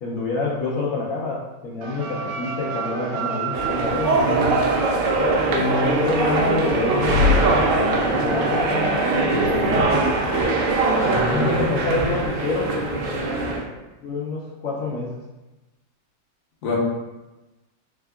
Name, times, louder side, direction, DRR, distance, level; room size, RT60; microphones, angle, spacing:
voice 1, 0.0-4.5 5.5-10.0 11.0-12.7 14.0-15.1, left 3 dB, 85° left, -4 dB, 0.7 m, -27 dB
sound 1, 1.8-11.5, right 5 dB, 90° right, 1.4 m, -31 dB
sound 2, 3.5-13.7, right 2 dB, 75° right, 1.2 m, -21 dB
voice 2, 11.0-12.1 16.6-16.8, left 2 dB, 60° left, -3 dB, 1.2 m, -26 dB
3.6 x 2.4 x 3.4 m, 1.1 s
omnidirectional pair, 2.2 m